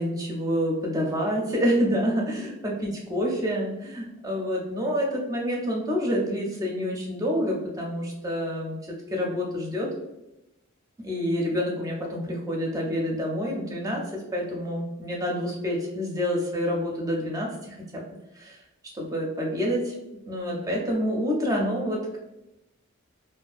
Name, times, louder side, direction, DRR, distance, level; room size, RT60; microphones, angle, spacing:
voice 1, 0.0-9.9 11.0-14.0 14.3-18.0 18.3-18.6 18.9-19.9 20.3-22.0, equal, 15° right, -2 dB, 0.4 m, -27 dB
2.3 x 2.3 x 2.4 m, 0.93 s
head